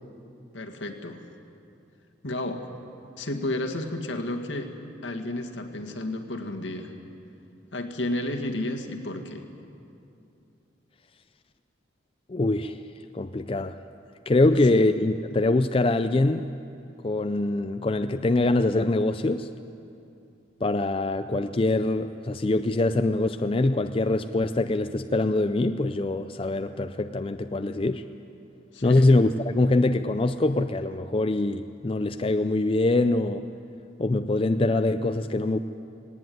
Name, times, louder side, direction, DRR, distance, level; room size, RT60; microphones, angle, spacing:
voice 1, 0.5-1.2 2.2-2.7 3.2-4.8 5.0-6.9 7.7-9.5 14.4-14.8 28.7-29.1, left 1 dB, 75° left, 4 dB, 1.9 m, -32 dB
voice 2, 12.3-12.8 13.1-13.8 14.3-16.5 17.0-19.5 20.6-28.0 28.8-33.4 34.0-35.6, left 2 dB, 30° left, 9 dB, 0.4 m, -23 dB
18.5 x 18.5 x 9.3 m, 2.7 s
head